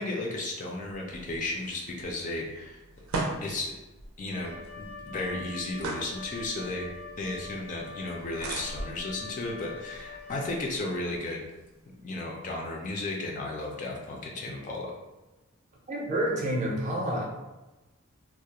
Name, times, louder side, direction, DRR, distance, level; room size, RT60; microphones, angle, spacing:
voice 1, 0.0-3.0 3.4-3.8 4.2-6.9 7.2-11.4 12.0-14.9, left 2 dB, 35° left, -1 dB, 0.3 m, -34 dB
sound 1, 0.8-12.1, right 2 dB, 90° right, 0.5 m, -41 dB
Wind instrument woodwind instrument, 4.3-10.9, left 4 dB, 75° left, 0.6 m, -44 dB
voice 2, 15.9-17.2, right 1 dB, 35° right, -2 dB, 0.5 m, -28 dB
2.3 x 2.0 x 2.8 m, 1.1 s
head